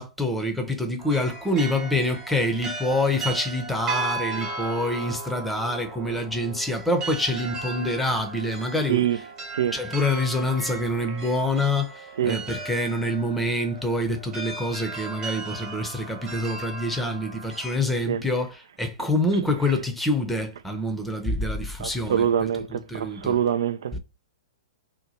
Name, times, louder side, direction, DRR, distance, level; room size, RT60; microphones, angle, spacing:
voice 1, 0.0-9.2 9.7-23.4 23.9-24.0, left 1 dB, 5° left, 0.7 m, -26 dB
sound 1, 1.0-17.8, right 3 dB, 25° right, 1.2 m, -36 dB
voice 2, 21.8-24.0, right 9 dB, 70° right, 0.4 m, -24 dB
2.8 x 2.2 x 4.1 m
hypercardioid pair, 110°, 2 cm